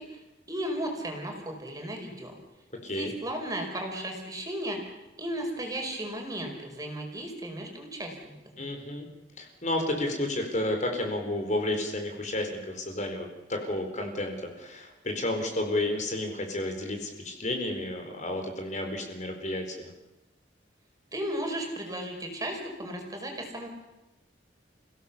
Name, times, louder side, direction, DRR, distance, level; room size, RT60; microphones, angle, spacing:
voice 1, 0.0-2.3 2.9-4.8 5.2-8.3 21.1-23.7, right 1 dB, 20° right, 2 dB, 5.0 m, -35 dB
voice 2, 8.6-9.1 9.4-19.9, left 1 dB, 45° left, 4 dB, 4.1 m, -31 dB
30.0 x 17.0 x 7.1 m, 0.99 s
head